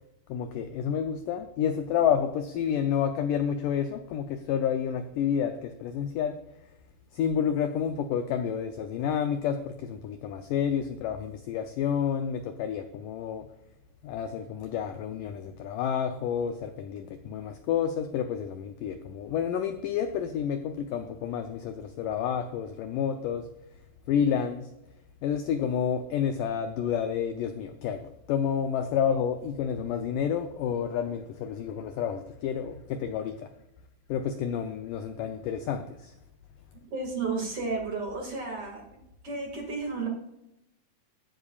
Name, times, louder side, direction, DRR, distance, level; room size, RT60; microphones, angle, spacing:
voice 1, 0.3-6.4 7.1-13.5 14.0-23.5 24.1-24.7 25.2-33.5 34.1-36.1, left 8 dB, 80° left, 7 dB, 1.9 m, -29 dB
voice 2, 36.7-38.8 39.2-40.1, right 4 dB, 40° right, 0 dB, 2.6 m, -32 dB
14.5 x 11.0 x 2.4 m, 0.85 s
omnidirectional pair, 4.5 m